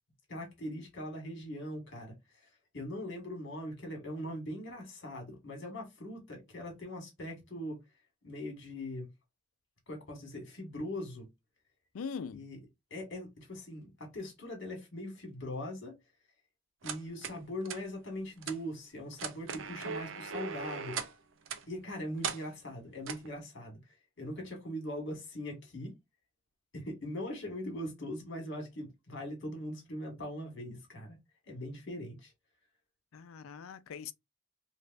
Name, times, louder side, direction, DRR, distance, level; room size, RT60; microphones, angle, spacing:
voice 1, 0.3-7.8 8.2-9.1 9.9-11.3 12.3-12.6 12.9-15.9 16.8-21.0 21.7-25.9 26.7-31.2 31.5-32.3, left 1 dB, 60° left, 1.7 m, -41 dB
voice 2, 11.9-12.5 33.1-34.1, left 6 dB, 90° left, 0.4 m, -41 dB
sound 1, 16.8-17.4 17.6-17.8 18.4-18.6 19.1-21.1 21.5-21.6 22.2-22.4 23.1-23.3, right 6 dB, 70° right, 0.6 m, -38 dB
3.3 x 3.2 x 2.5 m
head